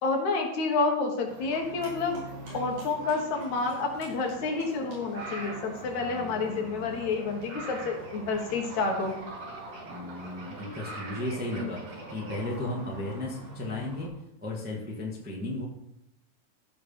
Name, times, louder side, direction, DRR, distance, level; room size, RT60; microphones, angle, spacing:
voice 1, 0.0-2.2 2.5-9.2 11.6-11.7, left 3 dB, 70° left, 2 dB, 2.7 m, -29 dB
Livestock farm animals working animals, 1.3-14.1, equal, 80° right, 6.1 m, -45 dB
sound 1, 4.4-12.4, right 2 dB, 55° right, 2.9 m, -43 dB
voice 2, 5.8-7.2 9.9-14.1 14.4-15.7, left 1 dB, 5° right, -2 dB, 1.0 m, -36 dB
14.0 x 4.8 x 5.7 m, 0.80 s
omnidirectional pair, 3.5 m